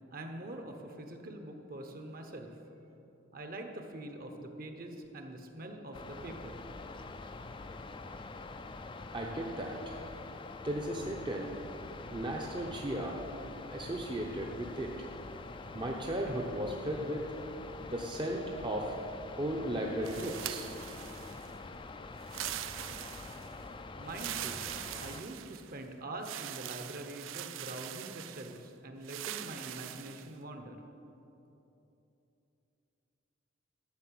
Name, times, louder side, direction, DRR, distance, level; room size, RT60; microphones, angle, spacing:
voice 1, 0.1-2.5 3.3-6.6 23.9-24.6 25.0-30.8, right 1 dB, 45° right, 5 dB, 1.0 m, -44 dB
sound 1, 5.9-25.2, left 3 dB, 25° left, 0.4 m, -45 dB
voice 2, 9.1-10.0 10.6-11.5 12.1-13.2 13.7-14.9 15.7-17.3 17.8-19.0 19.4-20.7, right 1 dB, 25° right, 0 dB, 0.7 m, -35 dB
sound 2, 20.0-21.5 22.2-23.6 24.1-25.8 26.2-28.6 29.0-30.3, right 13 dB, 75° right, 0.4 m, -42 dB
12.0 x 6.5 x 7.6 m, 3.0 s
head